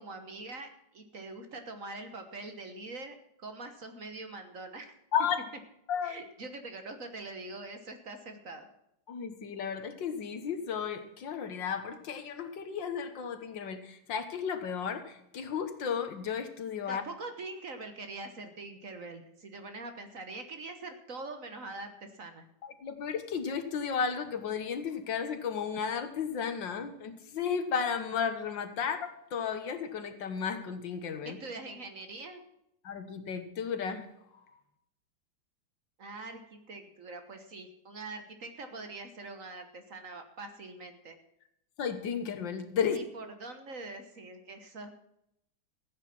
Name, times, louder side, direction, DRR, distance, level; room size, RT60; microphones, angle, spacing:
voice 1, 0.0-4.9 6.0-8.7 16.9-22.4 31.2-32.4 36.0-41.2 42.9-44.9, right 3 dB, 45° right, 7 dB, 1.5 m, -43 dB
voice 2, 5.9-6.2 9.1-17.0 22.6-31.4 32.8-34.1 34.5-34.6 41.8-43.0, left 7 dB, 70° left, 9 dB, 1.9 m, -34 dB
14.5 x 9.0 x 6.0 m, 0.78 s
omnidirectional pair, 2.1 m